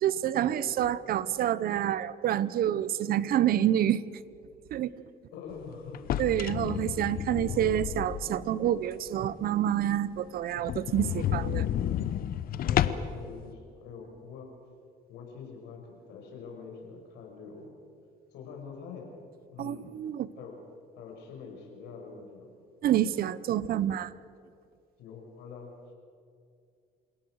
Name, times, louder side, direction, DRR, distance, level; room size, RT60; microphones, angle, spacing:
voice 1, 0.0-4.0 4.7-4.9 6.2-11.7 19.6-20.3 22.8-24.1, right 11 dB, 60° right, 17 dB, 0.9 m, -28 dB
voice 2, 5.3-6.1 7.3-7.7 12.6-14.5 15.1-17.7 18.3-19.1 19.5-19.9 20.4-20.6 21.0-22.5 25.0-26.0, left 5 dB, 85° left, 1 dB, 6.1 m, -44 dB
sound 1, 5.9-8.5 8.9-9.0 9.4-9.5 9.8-9.9 10.2-10.3 10.6-13.2, left 11 dB, 60° left, 0.9 m, -31 dB
29.0 x 17.5 x 6.5 m, 2.3 s
cardioid pair, 110°, 17 cm